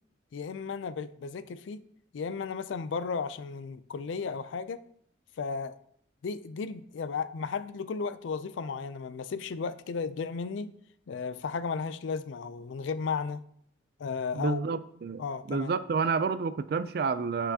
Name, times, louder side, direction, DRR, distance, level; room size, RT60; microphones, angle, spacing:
voice 1, 0.3-1.8 2.1-4.8 5.4-5.8 6.2-10.7 11.1-13.4 14.0-14.6 15.2-15.7, left 5 dB, 70° left, 13 dB, 0.4 m, -34 dB
voice 2, 14.3-15.2 15.5-17.5, right 5 dB, 50° right, 14 dB, 0.3 m, -29 dB
8.2 x 5.7 x 2.8 m, 0.67 s
head